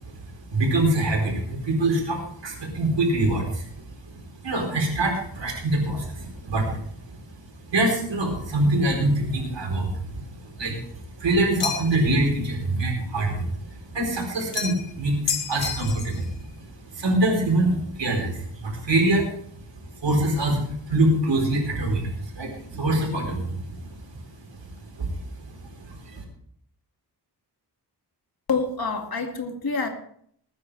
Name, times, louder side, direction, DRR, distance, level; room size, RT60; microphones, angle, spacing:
voice 1, 0.5-3.7 4.1-4.2 4.4-6.8 7.1-7.2 7.7-10.2 10.5-10.8 11.2-16.3 16.9-19.3 20.0-24.0 25.0-25.1 25.9-26.2, right 1 dB, 90° right, 1 dB, 4.3 m, -24 dB
sound 1, 11.6-12.1 14.5-14.9 15.3-16.2, left 6 dB, 85° left, 1.5 m, -29 dB
voice 2, 28.5-29.9, left 4 dB, 60° left, 3 dB, 2.3 m, -27 dB
20.0 x 9.7 x 3.4 m, 0.64 s
wide cardioid pair, 105°, 42 cm